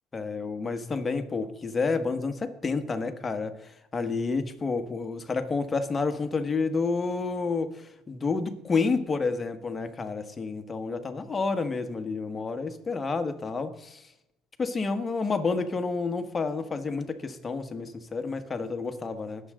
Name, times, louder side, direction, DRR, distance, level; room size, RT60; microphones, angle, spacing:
voice 1, 0.1-14.0 14.6-19.4, left 4 dB, 25° left, 7 dB, 1.5 m, -30 dB
20.5 x 7.7 x 3.8 m, 0.83 s
supercardioid pair, 80°, 0 cm